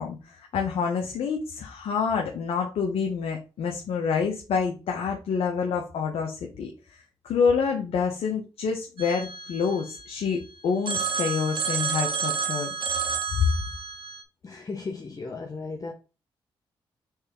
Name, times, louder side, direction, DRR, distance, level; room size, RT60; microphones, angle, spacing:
voice 1, 0.0-12.7 13.3-13.5, left 6 dB, 75° left, 0.7 m, -27 dB
Telephone, 9.0-10.4 10.9-14.2, right 6 dB, 55° right, 0.8 m, -30 dB
voice 2, 14.4-15.9, left 4 dB, 35° left, 0.6 m, -35 dB
4.4 x 3.3 x 3.4 m
supercardioid pair, 50°, 10 cm